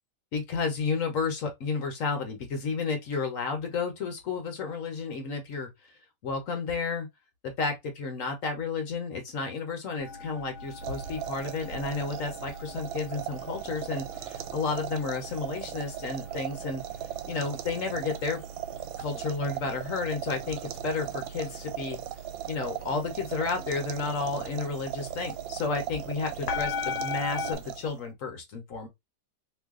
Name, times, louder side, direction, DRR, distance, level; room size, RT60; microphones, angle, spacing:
voice 1, 0.3-5.7 6.2-7.1 7.4-16.8 17.3-18.4 19.0-22.0 22.5-28.9, left 4 dB, 50° left, 1.1 m, -32 dB
sound 1, 10.0-27.5, left 5 dB, 70° left, 1.2 m, -41 dB
sound 2, 10.7-28.1, right 11 dB, 80° right, 1.3 m, -38 dB
3.1 x 2.5 x 3.6 m
omnidirectional pair, 2.1 m